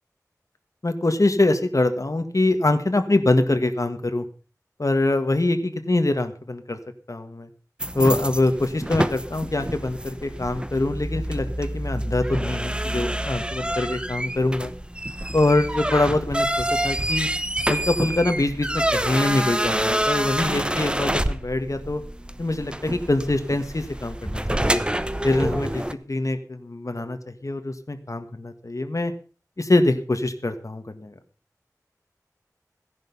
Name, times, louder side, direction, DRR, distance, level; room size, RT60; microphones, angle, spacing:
voice 1, 0.8-4.3 4.8-6.8 7.1-7.5 8.0-14.7 15.3-17.3 17.7-22.0 22.4-24.8 25.2-29.1 29.6-31.1, left 2 dB, 60° left, 7 dB, 1.8 m, -24 dB
sound 1, 7.8-25.9, right 1 dB, 15° right, 1.0 m, -27 dB
15.5 x 11.0 x 5.5 m, 0.37 s
wide cardioid pair, 45°, 6 cm